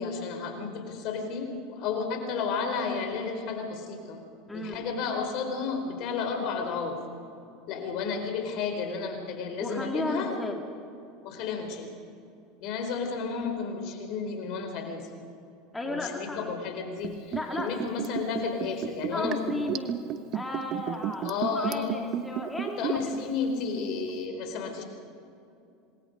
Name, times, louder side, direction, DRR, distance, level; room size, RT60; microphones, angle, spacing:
voice 1, 0.0-4.2 4.5-7.0 7.7-10.3 11.2-11.9 12.6-15.1 15.9-19.5 21.2-21.9 22.8-24.8, left 5 dB, 60° left, 5 dB, 4.3 m, -32 dB
voice 2, 4.5-4.9 9.6-10.6 15.7-16.4 17.3-17.7 19.1-19.9 20.3-22.9, left 2 dB, 10° left, 1 dB, 2.5 m, -34 dB
Liquid, 17.0-23.2 23.5-23.6, right 11 dB, 50° right, 1.2 m, -32 dB
27.0 x 20.5 x 5.3 m, 2.7 s
hypercardioid pair, 95°, 0 cm